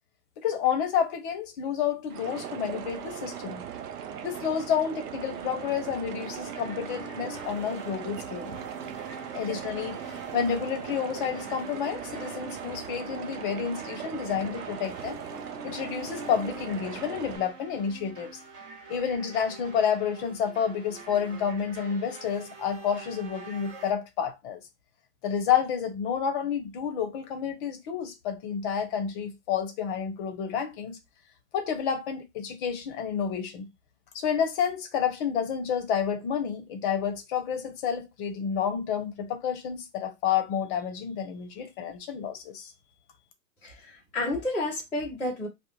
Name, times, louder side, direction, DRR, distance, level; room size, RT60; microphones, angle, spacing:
voice 1, 0.4-3.6 4.2-8.6 9.3-15.2 15.6-18.3 18.9-24.6 25.2-31.0 31.5-33.7 34.1-42.7, left 7 dB, 35° left, 0.7 m, -30 dB
sound 1, 2.1-17.4, right 8 dB, 75° right, 0.6 m, -39 dB
sound 2, 5.6-23.9, right 3 dB, 25° right, 0.9 m, -45 dB
voice 2, 43.6-45.5, left 2 dB, 5° left, 0.4 m, -31 dB
2.4 x 2.0 x 3.1 m
hypercardioid pair, 125°, 46 cm